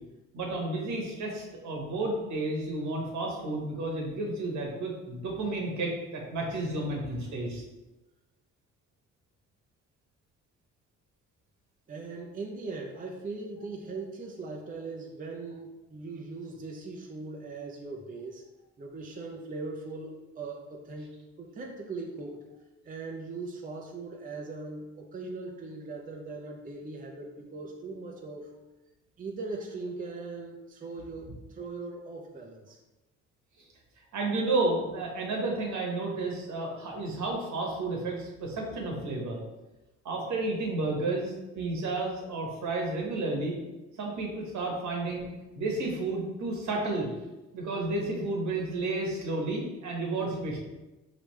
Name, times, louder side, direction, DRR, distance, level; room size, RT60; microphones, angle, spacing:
voice 1, 0.3-7.6 33.6-33.7 34.1-39.4 40.0-43.6 44.0-45.3 45.5-47.1 47.5-50.6, right 2 dB, 70° right, -1 dB, 1.3 m, -31 dB
voice 2, 11.9-18.4 18.8-22.4 22.8-28.5 29.2-32.8, right 3 dB, 30° right, 1 dB, 0.6 m, -40 dB
4.8 x 3.4 x 3.2 m, 1.1 s
cardioid pair, 90°, 30 cm